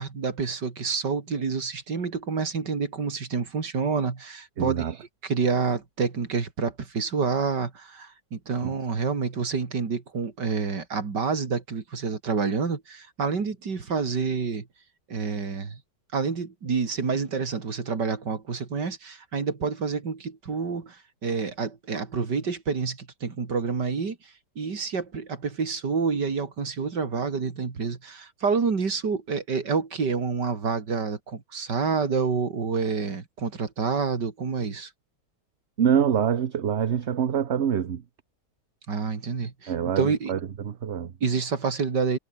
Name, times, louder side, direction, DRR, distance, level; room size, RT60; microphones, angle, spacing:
voice 1, 0.0-14.7 15.1-15.8 16.1-34.9 38.9-40.3 41.2-42.2, right 5 dB, 80° right, 3.3 m, -28 dB
voice 2, 4.6-4.9 8.6-8.7 35.8-38.0 39.7-41.1, right 8 dB, 45° right, 1.1 m, -25 dB
omnidirectional pair, 1.8 m